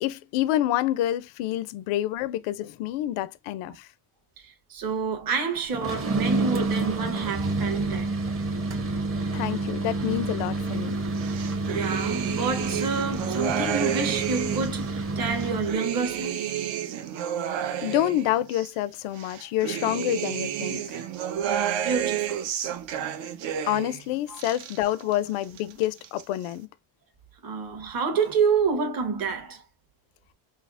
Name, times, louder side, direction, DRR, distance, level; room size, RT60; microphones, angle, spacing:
voice 1, 0.0-3.9 9.3-11.0 17.8-21.0 23.6-26.7, left 13 dB, 80° left, 0.5 m, -28 dB
voice 2, 4.4-8.1 11.7-16.5 21.4-22.5 24.3-24.4 27.4-29.6, right 5 dB, 45° right, 1.2 m, -28 dB
sound 1, 5.7-15.7, right 3 dB, 25° right, 0.9 m, -29 dB
sound 2, 11.2-14.8 15.3-18.7 19.2-24.0 24.3-25.2 25.4-26.2, right 10 dB, 65° right, 0.8 m, -31 dB
5.6 x 2.0 x 2.4 m
cardioid pair, 105°, 49 cm